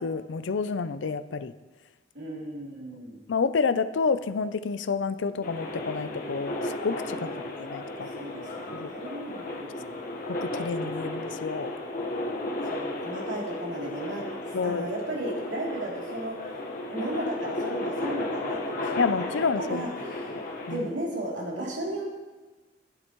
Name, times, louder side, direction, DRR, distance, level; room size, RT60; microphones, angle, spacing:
voice 1, 0.0-1.5 3.3-7.3 7.6-8.1 8.7-8.9 10.3-11.7 14.5-14.9 19.0-19.9 20.3-20.9, left 5 dB, 85° left, 13 dB, 0.5 m, -29 dB
voice 2, 2.1-3.2 7.2-7.4 8.1-10.0 12.6-14.2 14.6-16.4 16.9-20.3 20.7-22.2, right 1 dB, 80° right, -4 dB, 3.0 m, -35 dB
sound 1, 5.4-20.8, left 2 dB, 50° left, 1.3 m, -34 dB
12.5 x 10.5 x 3.1 m, 1.2 s
head